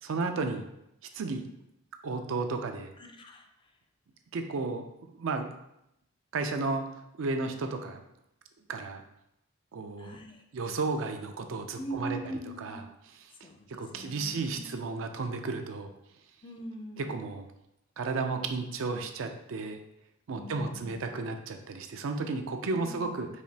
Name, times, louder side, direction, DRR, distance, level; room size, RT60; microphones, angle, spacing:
voice 1, 0.0-0.6 1.1-1.4 2.0-2.9 4.3-5.5 6.3-6.9 7.2-8.0 8.7-9.0 9.7-10.2 10.5-12.8 13.2-13.3 13.8-15.9 17.0-17.5 18.0-19.8 20.3-23.3, right 3 dB, 70° right, 6 dB, 0.4 m, -33 dB
voice 2, 3.0-3.5 10.0-10.4 11.8-12.8 13.4-14.8 16.4-17.1 20.3-21.0 22.6-23.1, right 1 dB, 25° left, 3 dB, 0.4 m, -42 dB
4.8 x 2.9 x 2.7 m, 0.82 s
head